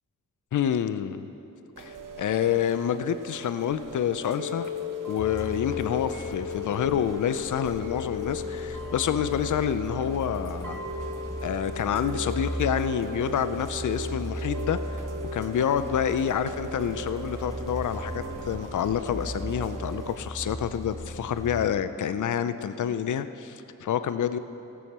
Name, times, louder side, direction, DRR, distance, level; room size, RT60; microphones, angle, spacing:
voice 1, 0.5-1.3 1.8-4.7 5.1-10.8 11.4-15.0 15.3-24.4, left 9 dB, 70° left, 12 dB, 0.5 m, -28 dB
Chime / Rain, 1.8-20.2, left 2 dB, 80° right, 1.0 m, -37 dB
Truck, 5.2-21.7, equal, 10° left, 0.6 m, -37 dB
17.0 x 6.3 x 7.3 m, 2.9 s
wide cardioid pair, 140°, 31 cm